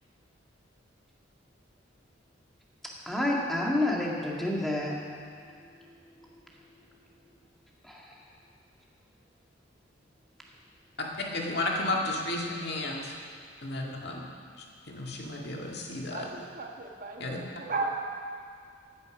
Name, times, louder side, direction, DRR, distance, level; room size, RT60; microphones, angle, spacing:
voice 1, 3.1-4.9 7.9-8.1, left 1 dB, ahead, -4 dB, 2.0 m, -28 dB
voice 2, 11.3-13.2 13.6-14.2 14.6-16.3 17.2-17.4, left 2 dB, 55° left, -1 dB, 2.0 m, -33 dB
voice 3, 16.1-18.2, right 3 dB, 45° right, 2 dB, 1.5 m, -35 dB
15.5 x 9.8 x 6.1 m, 2.2 s
head